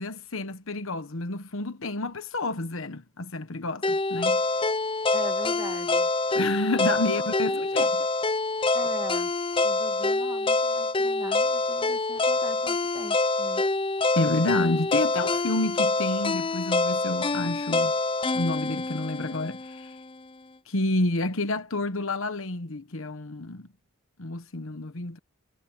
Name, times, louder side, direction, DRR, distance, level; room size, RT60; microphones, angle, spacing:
voice 1, 0.0-4.4 6.3-7.9 14.1-17.9 18.3-20.0 20.7-23.7 24.2-25.2, left 2 dB, 65° left, 1.1 m, -29 dB
sound 1, 3.8-19.9, left 3 dB, 25° left, 0.5 m, -26 dB
voice 2, 5.1-6.1 6.8-8.1 8.7-9.4 9.6-13.6, right 1 dB, 15° right, 2.2 m, -41 dB
head